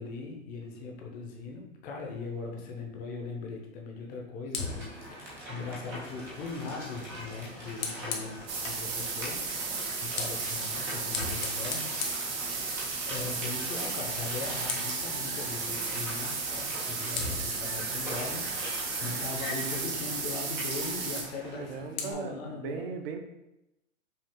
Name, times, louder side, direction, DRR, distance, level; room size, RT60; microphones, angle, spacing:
voice 1, 0.0-11.9 13.1-22.9, left 4 dB, 20° left, 1 dB, 0.7 m, -40 dB
Fire, 4.5-8.9 9.8-13.1 13.4-13.7 14.0-15.1 16.5-16.6 17.1-19.5 21.3-22.1, left 4 dB, 80° left, 1.1 m, -40 dB
sound 1, 4.5-21.8, equal, 5° right, 0.3 m, -42 dB
sound 2, 8.5-21.2, right 4 dB, 80° right, 1.3 m, -34 dB
voice 2, 21.3-23.2, right 5 dB, 45° right, 6 dB, 0.6 m, -38 dB
5.4 x 2.3 x 3.7 m, 0.92 s
hypercardioid pair, 130°, 40 cm